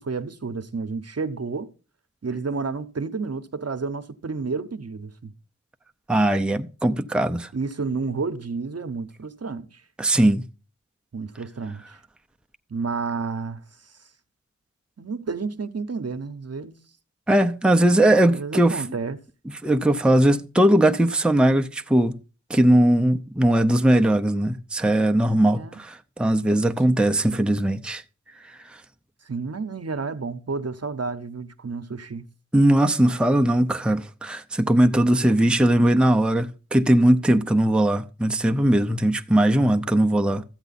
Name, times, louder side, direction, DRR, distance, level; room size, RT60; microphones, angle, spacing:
voice 1, 0.0-1.7 2.2-5.3 7.5-9.8 11.1-12.0 12.7-13.6 15.0-16.8 18.2-19.2 25.5-25.8 26.8-27.0 29.2-32.3 39.5-39.7, right 4 dB, 55° right, 0.9 m, -31 dB
voice 2, 6.1-7.5 10.0-10.4 17.3-18.8 19.5-22.2 22.5-28.0 32.5-40.4, right 1 dB, 5° right, 0.6 m, -19 dB
13.5 x 8.1 x 4.1 m
cardioid pair, 45°, 31 cm